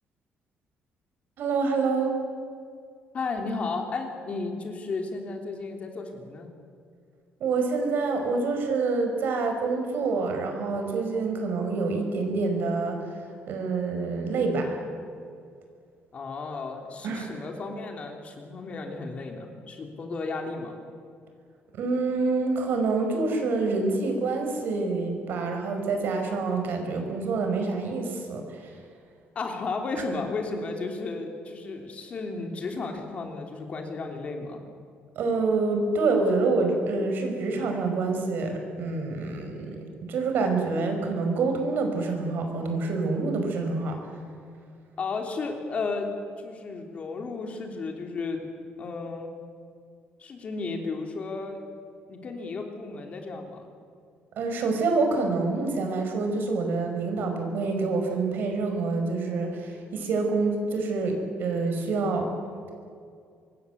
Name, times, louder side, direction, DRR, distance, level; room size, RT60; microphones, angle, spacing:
voice 1, 1.4-2.2 7.4-13.0 13.5-14.7 17.0-17.3 21.7-28.7 35.2-44.0 54.4-62.3, right 3 dB, 55° right, 4 dB, 5.3 m, -27 dB
voice 2, 3.1-6.5 16.1-20.8 29.3-34.6 45.0-46.1 46.4-48.4 48.8-49.3 50.2-51.6 52.1-53.7, left 3 dB, 35° left, 3 dB, 3.2 m, -33 dB
25.5 x 21.5 x 8.1 m, 2.3 s
cardioid pair, 170°, 4 cm